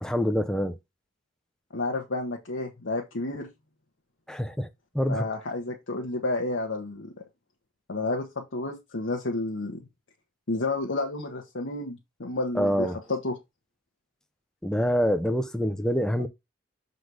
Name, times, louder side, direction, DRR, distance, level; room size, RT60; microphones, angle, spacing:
voice 1, 0.0-0.8 4.3-4.7 4.9-5.3 12.5-13.0 14.6-16.3, equal, 5° left, 0.5 m, -26 dB
voice 2, 1.7-3.5 5.1-7.1 7.9-9.8 10.5-13.3, left 2 dB, 65° left, 1.0 m, -31 dB
6.5 x 4.1 x 4.7 m
head